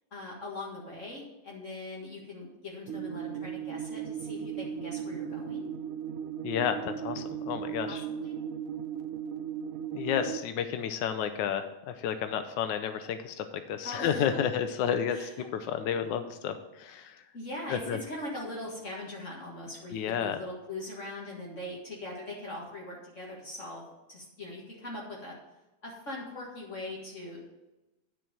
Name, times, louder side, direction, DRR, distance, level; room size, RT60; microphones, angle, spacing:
voice 1, 0.1-5.7 7.9-8.3 13.8-14.2 15.1-15.9 17.3-25.3 25.8-27.4, left 1 dB, 45° left, -3 dB, 2.0 m, -41 dB
sound 1, 2.9-10.4, right 8 dB, 65° right, 0.9 m, -37 dB
voice 2, 6.4-8.0 9.9-17.2 17.7-18.0 19.9-20.4, left 8 dB, 90° left, 9 dB, 1.3 m, -31 dB
9.9 x 4.5 x 6.7 m, 1.0 s
omnidirectional pair, 1.9 m